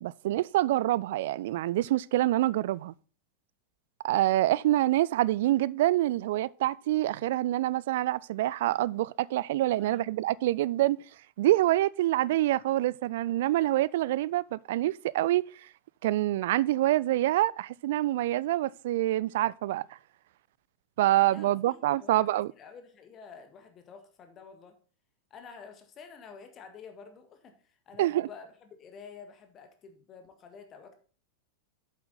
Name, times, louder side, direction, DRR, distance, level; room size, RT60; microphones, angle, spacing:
voice 1, 0.0-2.9 4.0-11.0 11.4-15.4 16.0-19.9 21.0-22.5 28.0-28.3, right 15 dB, 55° right, 0.3 m, -26 dB
voice 2, 9.8-10.1 21.3-22.2 22.6-24.8 25.3-30.9, left 6 dB, 30° left, 1.8 m, -49 dB
8.4 x 7.5 x 4.1 m
figure-of-eight pair, 90°, 0 cm